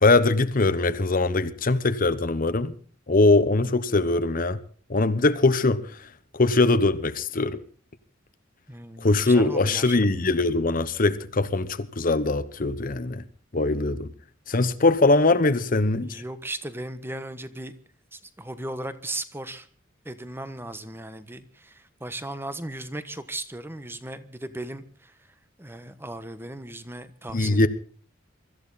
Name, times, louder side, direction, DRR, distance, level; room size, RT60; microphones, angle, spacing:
voice 1, 0.0-2.7 3.1-4.6 4.9-5.8 6.3-7.6 9.0-13.2 13.5-14.1 14.5-16.2 27.3-27.7, left 2 dB, 45° left, 0.9 m, -21 dB
voice 2, 8.7-10.0 16.0-17.7 18.1-19.7 20.0-25.1 25.6-27.7, right 1 dB, 10° right, 1.2 m, -37 dB
24.0 x 14.0 x 4.1 m
head